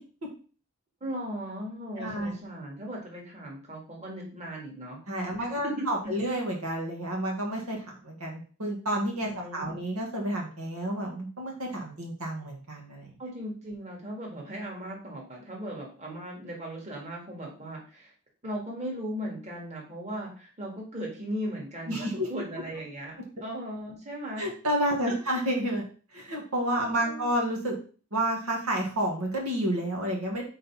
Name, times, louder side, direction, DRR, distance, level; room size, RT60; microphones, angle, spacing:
voice 1, 1.0-5.0 5.4-6.3 9.3-9.8 13.2-18.1 18.4-23.1 23.4-24.5 25.0-25.2 26.7-27.3, equal, 30° right, -2 dB, 1.7 m, -37 dB
voice 2, 2.0-2.3 5.1-13.1 21.9-22.3 24.4-25.8 26.1-27.8 28.1-30.4, right 1 dB, 80° right, 0 dB, 1.7 m, -30 dB
4.3 x 4.0 x 5.6 m, 0.39 s
head